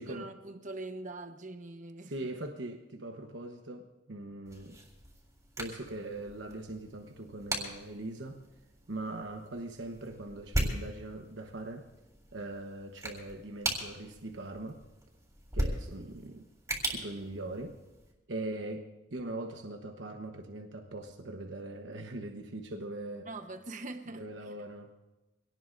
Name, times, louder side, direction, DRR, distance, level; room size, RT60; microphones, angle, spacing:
voice 1, 0.0-2.1 23.2-24.5, right 2 dB, 40° right, 1.0 m, -43 dB
voice 2, 2.0-4.8 5.6-8.4 8.9-11.9 12.3-14.8 15.5-16.4 16.9-17.8 18.3-23.3 24.2-24.9, right 2 dB, 75° right, 1.1 m, -41 dB
sound 1, 4.5-18.1, right 1 dB, 15° right, 3.6 m, -39 dB
25.0 x 18.5 x 2.6 m
head